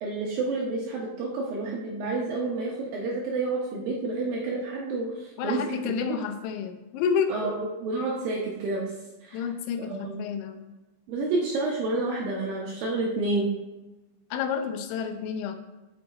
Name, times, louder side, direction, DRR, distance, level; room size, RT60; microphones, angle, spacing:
voice 1, 0.0-5.9 7.3-8.9 9.2-9.4 9.8-10.2 11.1-13.5, right 3 dB, 75° right, -3 dB, 2.1 m, -29 dB
voice 2, 5.4-7.5 9.3-10.7 14.3-15.6, left 7 dB, 85° left, 7 dB, 3.0 m, -30 dB
7.9 x 5.7 x 4.1 m, 1.1 s
omnidirectional pair, 5.3 m